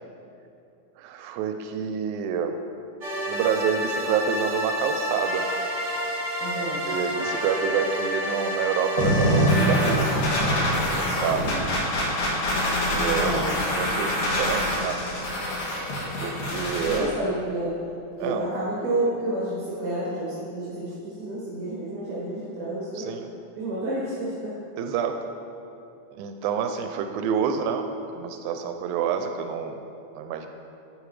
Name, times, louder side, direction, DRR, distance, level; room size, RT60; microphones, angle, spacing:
voice 1, 1.0-2.6 3.3-5.5 6.9-10.4 10.7-11.6 12.9-13.4 13.7-15.0 16.2-17.1 18.2-18.5 23.0-23.3 24.8-25.2 26.1-27.9 28.1-29.8 30.1-30.5, right 7 dB, 90° right, 6 dB, 2.0 m, -28 dB
sound 1, 3.0-9.9, equal, 35° right, 1.2 m, -29 dB
voice 2, 6.4-6.9 13.0-13.7 16.8-17.9 18.2-23.1 23.6-24.6, right 1 dB, 50° right, -7 dB, 2.3 m, -30 dB
sound 2, 9.0-17.0, equal, 75° left, 3.0 m, -24 dB
11.5 x 8.7 x 3.2 m, 2.7 s
omnidirectional pair, 3.4 m